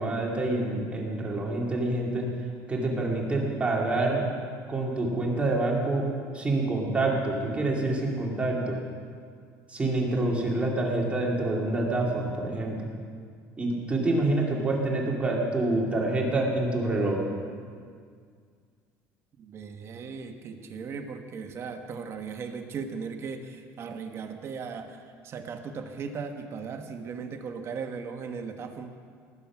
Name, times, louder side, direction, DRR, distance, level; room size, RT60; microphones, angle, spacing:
voice 1, 0.0-2.3 2.7-4.3 4.7-6.1 6.3-8.8 9.7-12.8 13.6-17.2, right 2 dB, 20° right, -2 dB, 2.4 m, -27 dB
voice 2, 19.4-28.9, right 5 dB, 40° right, 6 dB, 1.2 m, -37 dB
19.5 x 7.2 x 6.0 m, 2.1 s
cardioid pair, 120°, 7 cm